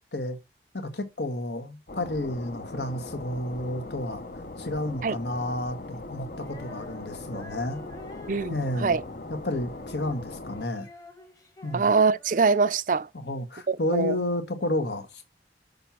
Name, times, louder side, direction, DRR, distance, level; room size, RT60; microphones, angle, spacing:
voice 1, 0.7-4.2 4.6-7.8 8.5-9.0 9.3-10.9 11.6-11.9 13.1-15.2, left 1 dB, 75° left, 1.6 m, -31 dB
sound 1, 1.9-10.7, left 2 dB, 55° left, 0.9 m, -40 dB
Female singing, 6.4-12.8, left 2 dB, 20° left, 1.3 m, -50 dB
voice 2, 8.3-9.0 11.7-13.1 13.7-14.2, right 4 dB, 45° right, 0.5 m, -23 dB
6.8 x 5.4 x 5.9 m
head